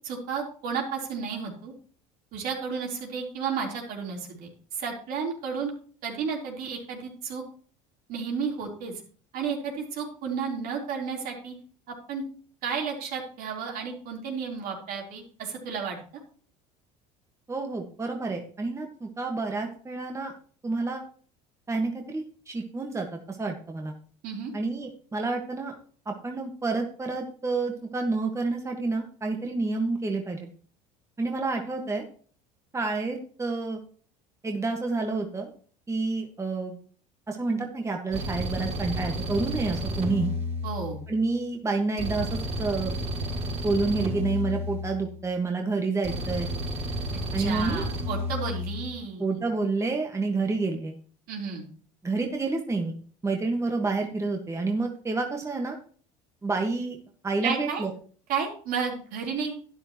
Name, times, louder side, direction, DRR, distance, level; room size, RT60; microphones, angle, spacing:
voice 1, 0.0-1.7 2.3-5.7 6.0-7.4 8.1-8.9 9.3-11.5 12.1-12.2 12.6-16.0 24.2-24.5 40.6-41.0 47.4-49.4 51.3-51.6 57.4-57.9 58.3-59.5, right 6 dB, 65° right, 0 dB, 3.9 m, -32 dB
voice 2, 17.5-20.3 20.6-21.0 21.7-23.9 24.5-25.7 26.0-30.5 31.2-32.0 32.7-33.8 34.4-35.5 35.9-36.7 37.3-40.3 41.1-42.9 43.6-46.5 47.3-47.8 49.2-51.0 52.0-52.9 53.2-55.8 56.4-57.0 57.2-57.9, right 3 dB, 20° right, 3 dB, 1.7 m, -29 dB
sound 1, 38.1-41.2 42.0-45.2 46.0-48.9, equal, 40° right, 4.2 m, -32 dB
11.5 x 10.0 x 3.1 m, 0.43 s
supercardioid pair, 95°, 17 cm